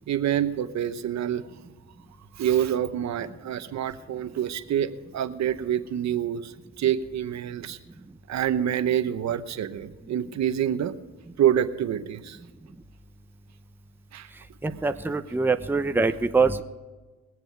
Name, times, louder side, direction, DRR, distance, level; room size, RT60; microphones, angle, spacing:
voice 1, 0.1-1.5 2.3-7.8 8.3-10.9 11.4-12.4 14.1-14.3, right 10 dB, 65° right, 11 dB, 1.0 m, -27 dB
voice 2, 14.6-16.6, right 4 dB, 5° right, 7 dB, 0.8 m, -24 dB
21.5 x 7.9 x 4.6 m, 1.3 s
cardioid pair, 90°, 30 cm